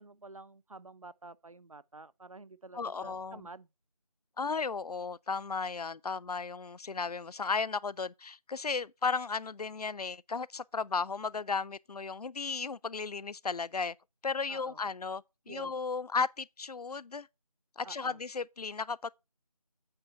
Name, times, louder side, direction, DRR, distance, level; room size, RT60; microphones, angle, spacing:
voice 1, 0.0-3.7 14.5-14.8 15.5-15.7 17.8-18.2, right 3 dB, 60° right, 0.5 m, -50 dB
voice 2, 2.7-3.4 4.4-13.9 14.2-17.3 17.8-19.1, left 4 dB, 75° left, 0.4 m, -35 dB
8.5 x 4.8 x 4.4 m
figure-of-eight pair, 175°, 20 cm